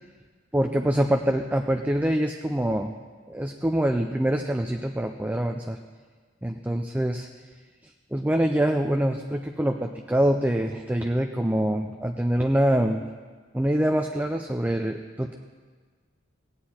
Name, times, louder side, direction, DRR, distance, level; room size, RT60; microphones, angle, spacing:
voice 1, 0.5-2.9 3.3-5.8 6.4-7.3 8.1-13.0 13.5-15.3, right 1 dB, 10° right, 4 dB, 0.4 m, -25 dB
16.5 x 9.6 x 4.3 m, 1.5 s
head